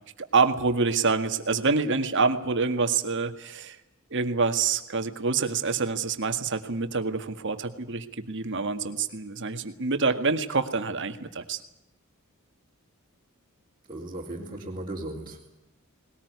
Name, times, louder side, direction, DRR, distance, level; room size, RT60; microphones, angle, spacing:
voice 1, 0.2-3.8 4.1-11.6, right 4 dB, 60° right, 8 dB, 1.9 m, -26 dB
voice 2, 13.9-15.5, right 1 dB, 25° right, -5 dB, 3.5 m, -36 dB
20.5 x 19.0 x 9.5 m, 0.91 s
head